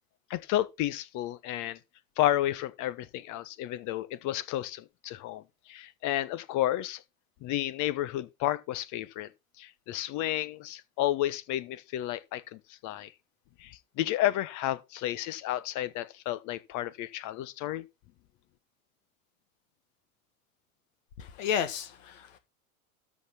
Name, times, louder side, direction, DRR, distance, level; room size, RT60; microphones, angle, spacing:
voice 1, 0.3-1.8 2.2-5.4 5.7-7.0 7.4-9.3 9.6-13.1 13.6-17.8, left 13 dB, 40° left, 1.1 m, -31 dB
voice 2, 21.2-22.4, left 8 dB, 60° left, 1.9 m, -32 dB
13.0 x 6.1 x 4.3 m
hypercardioid pair, 85°, 44 cm